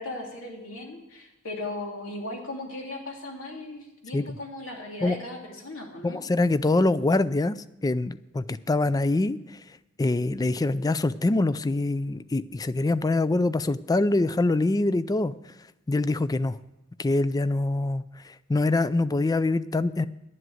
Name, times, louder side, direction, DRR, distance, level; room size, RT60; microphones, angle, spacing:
voice 1, 0.0-6.2, left 2 dB, 85° left, 0 dB, 2.8 m, -37 dB
voice 2, 6.0-7.6 7.8-9.4 10.0-15.3 15.9-16.6 17.0-20.0, left 2 dB, 20° left, 16 dB, 0.4 m, -24 dB
11.0 x 7.7 x 7.8 m, 0.95 s
head